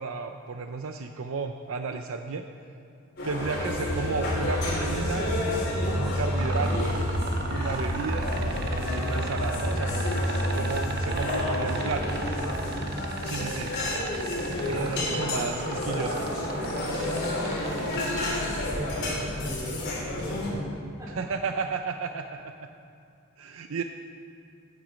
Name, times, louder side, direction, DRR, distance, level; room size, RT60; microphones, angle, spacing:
voice 1, 0.0-2.5 3.2-5.3 5.8-6.9 7.5-8.3 8.8-10.1 10.5-12.0 13.2-13.7 14.7-16.2 21.1-22.5 23.4-23.8, right 4 dB, 75° right, 6 dB, 0.6 m, -33 dB
sound 1, 3.2-20.5, left 1 dB, 55° left, 3.9 m, -31 dB
sound 2, 3.4-14.2, equal, 70° left, 2.1 m, -31 dB
sound 3, 6.4-18.5 20.2-20.3, right 4 dB, 50° right, 1.1 m, -36 dB
voice 2, 12.2-12.9 14.7-17.9 18.4-21.3, equal, 15° right, -4 dB, 3.1 m, -38 dB
16.0 x 9.3 x 5.1 m, 2.5 s
head